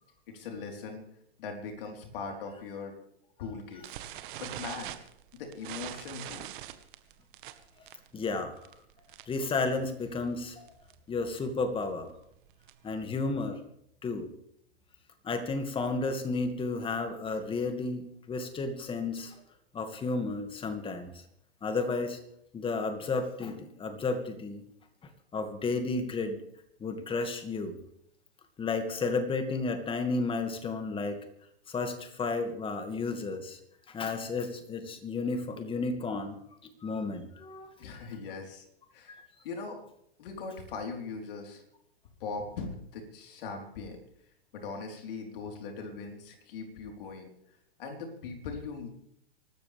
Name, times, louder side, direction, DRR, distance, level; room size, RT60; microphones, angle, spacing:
voice 1, 0.3-1.0 1.4-2.9 3.4-3.8 4.4-5.0 5.3-6.5 37.8-38.6 38.9-39.1 39.4-39.8 40.2-41.6 42.2-44.0 44.5-47.3 47.8-48.9, left 4 dB, 60° left, 3 dB, 4.2 m, -40 dB
sound 1, 3.8-9.5 9.7-10.0 10.3-10.4 10.7-10.9 11.4-13.0, right 13 dB, 55° right, 1.6 m, -43 dB
voice 2, 8.1-8.5 9.3-10.7 11.1-12.1 12.8-13.6 14.0-14.3 15.2-18.0 18.3-19.4 19.7-21.2 21.6-22.2 22.5-24.6 25.3-26.4 26.8-27.8 28.6-31.2 31.7-33.6 33.9-36.4 36.8-37.7 39.1-39.3, left 3 dB, 15° left, 8 dB, 2.1 m, -32 dB
24.0 x 13.0 x 3.5 m, 0.71 s
hypercardioid pair, 115°, 31 cm